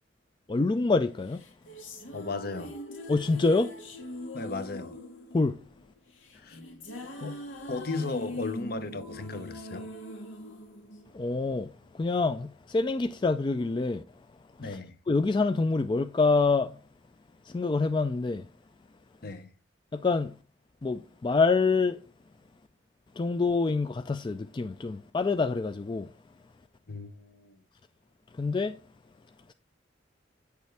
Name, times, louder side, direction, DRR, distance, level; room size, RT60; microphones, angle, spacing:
voice 1, 0.5-1.4 3.1-3.7 5.3-5.6 11.1-14.0 14.6-14.8 15.1-16.8 17.4-18.5 19.9-20.4 20.8-22.0 23.2-26.1 28.3-28.8, left 3 dB, 25° left, 0.3 m, -26 dB
sound 1, 1.3-11.7, left 1 dB, 85° left, 1.8 m, -42 dB
voice 2, 2.1-2.8 4.3-5.0 6.3-6.6 7.2-7.4 7.7-9.9 14.6-15.0 19.2-19.5 26.9-27.6, left 3 dB, 50° left, 0.9 m, -35 dB
9.2 x 6.7 x 3.4 m
head